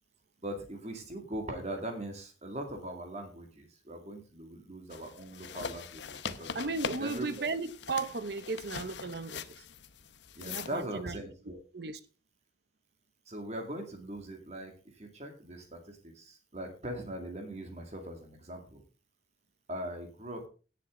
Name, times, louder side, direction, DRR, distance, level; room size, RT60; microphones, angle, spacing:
voice 1, 0.4-6.5 7.0-7.4 10.3-11.6 13.3-18.8 19.7-20.5, right 1 dB, 40° right, 2.3 m, -41 dB
sound 1, 4.9-10.8, left 6 dB, 80° left, 0.9 m, -42 dB
voice 2, 6.5-9.6 10.4-11.2 11.7-12.0, right 3 dB, 60° right, 0.8 m, -35 dB
17.5 x 6.7 x 3.8 m
head